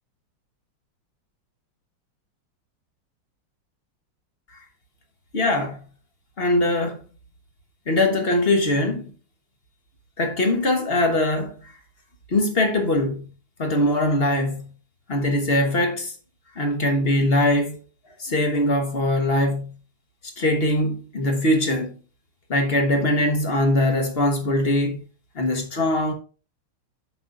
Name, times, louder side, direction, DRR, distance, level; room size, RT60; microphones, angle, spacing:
voice 1, 5.3-5.8 6.4-7.0 7.9-9.1 10.2-11.5 12.3-13.3 13.6-14.7 15.1-16.1 16.6-17.8 18.2-19.7 20.4-21.9 22.5-25.0 25.3-26.1, left 1 dB, 35° left, 1.1 m, -21 dB
8.0 x 6.2 x 2.5 m
omnidirectional pair, 2.4 m